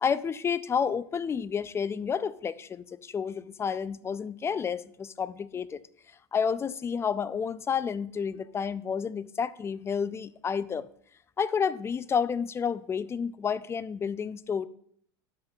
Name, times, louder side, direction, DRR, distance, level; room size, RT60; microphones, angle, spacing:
voice 1, 0.0-5.8 6.3-10.9 11.4-14.7, left 6 dB, 20° left, 0.3 m, -30 dB
10.5 x 7.8 x 2.3 m
hypercardioid pair, 95°, 12 cm